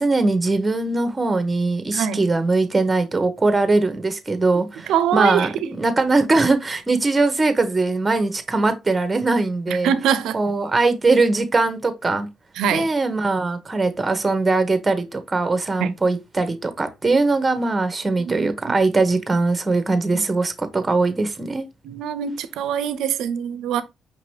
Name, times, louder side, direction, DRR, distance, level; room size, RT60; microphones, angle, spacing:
voice 1, 0.0-9.9 10.3-12.3 12.7-21.7, right 3 dB, 20° right, 0.8 m, -21 dB
voice 2, 1.9-2.3 4.9-5.5 9.7-10.4 12.6-12.9 15.8-15.9 18.2-18.8 20.1-20.2 21.8-23.8, right 8 dB, 85° right, 0.5 m, -23 dB
5.3 x 2.9 x 3.1 m
cardioid pair, 90°, 0 cm